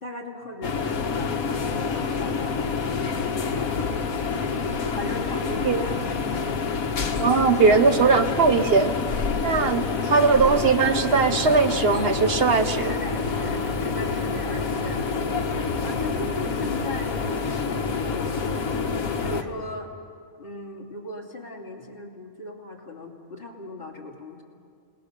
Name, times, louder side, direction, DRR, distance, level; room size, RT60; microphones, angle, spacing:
voice 1, 0.0-4.3 4.9-6.4 12.8-15.1 15.8-18.4 19.0-19.9 20.4-24.4, left 2 dB, 40° left, -1 dB, 2.9 m, -38 dB
sound 1, 0.6-19.4, left 5 dB, 75° left, 1.7 m, -27 dB
voice 2, 7.2-8.9 9.4-12.9, right 5 dB, 50° right, 9 dB, 1.0 m, -20 dB
29.0 x 19.5 x 6.8 m, 2.2 s
omnidirectional pair, 1.5 m